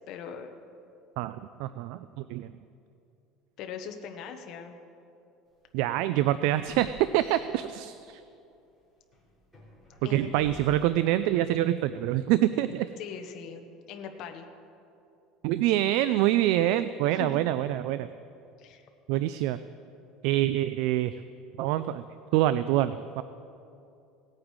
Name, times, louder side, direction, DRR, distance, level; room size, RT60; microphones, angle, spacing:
voice 1, 0.1-0.5 3.6-4.8 10.0-10.5 13.0-14.5 17.1-17.5 18.6-18.8, left 6 dB, 45° left, 5 dB, 1.0 m, -40 dB
voice 2, 1.2-2.5 5.7-8.2 10.1-12.9 15.4-18.1 19.1-19.6 20.2-21.2 21.6-22.0 22.3-23.2, right 13 dB, 65° right, 13 dB, 0.3 m, -26 dB
sound 1, 5.5-5.7 6.6-8.1 8.5-8.7 9.1-11.2, left 1 dB, 10° right, 3.5 m, -51 dB
17.5 x 8.7 x 4.8 m, 2.6 s
cardioid pair, 165°, 0 cm